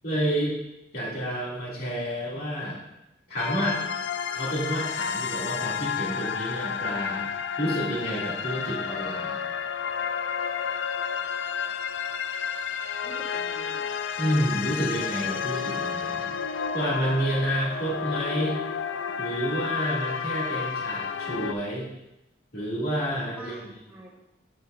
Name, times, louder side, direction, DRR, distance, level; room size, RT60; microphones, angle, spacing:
voice 1, 0.0-0.6 0.9-2.8 3.3-3.8 4.3-7.3 7.6-9.4 14.2-16.3 16.7-18.6 19.2-21.9 22.5-23.5, equal, 50° left, -6 dB, 2.7 m, -29 dB
sound 1, 3.4-21.5, left 7 dB, 80° left, 0.4 m, -31 dB
voice 2, 13.0-14.0 23.4-24.1, right 1 dB, 10° right, -8 dB, 2.3 m, -46 dB
8.8 x 7.8 x 2.6 m, 0.89 s
head